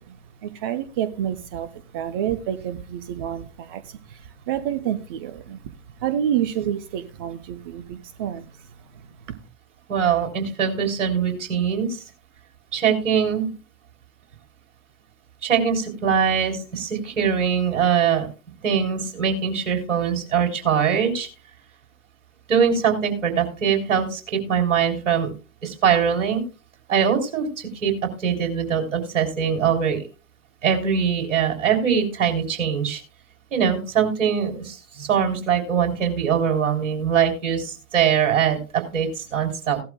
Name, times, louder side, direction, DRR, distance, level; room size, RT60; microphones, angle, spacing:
voice 1, 0.0-9.4, right 10 dB, 20° right, 11 dB, 0.5 m, -29 dB
voice 2, 9.9-12.0 12.7-13.5 15.4-18.3 18.6-21.3 22.5-25.3 25.6-26.4 26.9-27.9 28.2-30.1 30.6-33.0 33.5-39.8, right 7 dB, 55° right, 3 dB, 3.6 m, -22 dB
16.5 x 12.0 x 2.2 m, 0.32 s
figure-of-eight pair, 110°, 43 cm